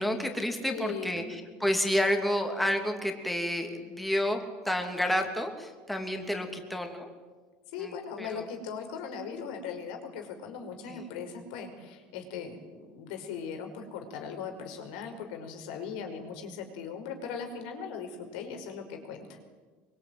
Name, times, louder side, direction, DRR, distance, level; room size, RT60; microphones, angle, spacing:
voice 1, 0.0-7.1 7.8-8.4 10.9-11.0, equal, ahead, 4 dB, 2.7 m, -30 dB
voice 2, 0.6-1.3 7.7-19.4, left 6 dB, 85° left, 5 dB, 5.6 m, -39 dB
24.0 x 24.0 x 9.6 m, 1.4 s
cardioid pair, 155°, 5 cm